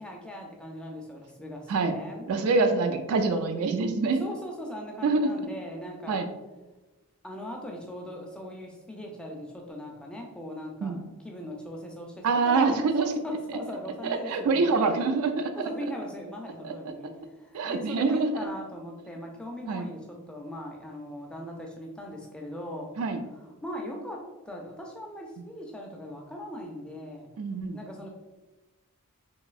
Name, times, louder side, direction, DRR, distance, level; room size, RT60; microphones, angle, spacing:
voice 1, 0.0-2.3 4.2-6.3 7.2-11.0 11.2-14.8 15.6-22.9 23.6-27.3 27.7-28.1, left 1 dB, 5° left, 0 dB, 0.3 m, -39 dB
voice 2, 2.3-4.2 5.0-5.3 6.1-6.3 10.8-11.0 12.2-13.1 14.0-15.7 16.6-16.7 17.5-18.3 19.7-19.9 23.0-23.2 27.4-27.8, right 4 dB, 75° right, 7 dB, 0.3 m, -25 dB
3.0 x 2.6 x 2.4 m, 1.1 s
head